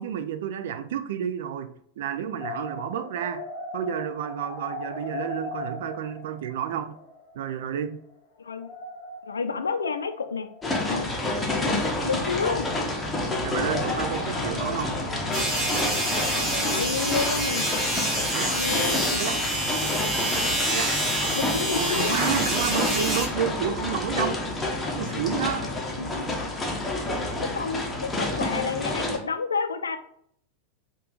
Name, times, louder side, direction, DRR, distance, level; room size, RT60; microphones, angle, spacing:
voice 1, 0.0-3.4 3.7-7.0 7.3-8.0 13.4-15.0 18.3-18.6 19.2-19.4 20.7-20.9 21.7-24.4 25.0-25.7, right 8 dB, 55° right, 0.4 m, -30 dB
sound 1, 2.4-7.8 8.0-8.2 8.5-10.8 11.5-13.3 13.6-17.6, left 2 dB, 45° left, 0.8 m, -39 dB
voice 2, 8.4-8.7 9.2-10.5 10.9-11.1 11.5-12.7 16.5-17.7 18.5-19.2 21.3-22.2 26.0-26.3 27.5-30.0, left 5 dB, 70° left, 0.4 m, -30 dB
sound 2, 10.6-29.2, left 2 dB, 10° left, 0.9 m, -29 dB
sound 3, 15.3-23.3, right 1 dB, 10° right, 1.9 m, -27 dB
5.4 x 2.5 x 3.8 m
figure-of-eight pair, 90°, 0 cm